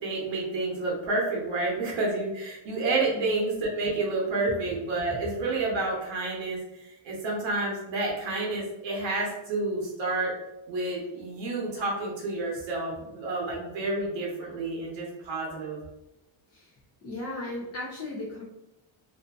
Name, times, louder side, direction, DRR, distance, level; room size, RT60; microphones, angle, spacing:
voice 1, 0.0-10.3 10.7-15.8, right 2 dB, 65° right, -3 dB, 0.9 m, -29 dB
voice 2, 17.0-18.4, left 2 dB, 35° left, -5 dB, 0.5 m, -36 dB
2.6 x 2.5 x 2.2 m, 0.93 s
cardioid pair, 155°, 49 cm